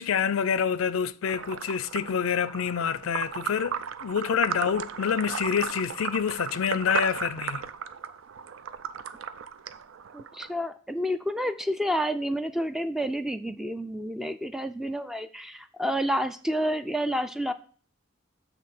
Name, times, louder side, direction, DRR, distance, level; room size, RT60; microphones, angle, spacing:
voice 1, 0.0-7.7, left 7 dB, 85° left, 0.4 m, -27 dB
sound 1, 1.3-10.5, right 7 dB, 70° right, 0.4 m, -35 dB
voice 2, 10.1-17.5, equal, ahead, 0.3 m, -29 dB
7.6 x 3.5 x 5.9 m
head